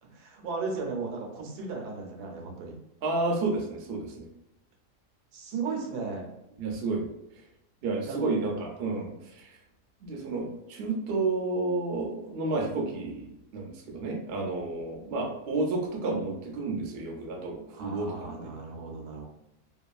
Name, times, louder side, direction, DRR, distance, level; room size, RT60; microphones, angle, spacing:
voice 1, 0.0-2.8 5.3-6.3 8.0-8.4 8.8-9.1 14.6-14.7 17.7-19.2, right 4 dB, 80° right, 1 dB, 1.2 m, -36 dB
voice 2, 3.0-4.3 6.6-7.1 7.8-9.6 10.0-18.5, right 3 dB, 60° right, 0 dB, 0.6 m, -31 dB
2.8 x 2.3 x 2.3 m, 0.87 s
omnidirectional pair, 1.6 m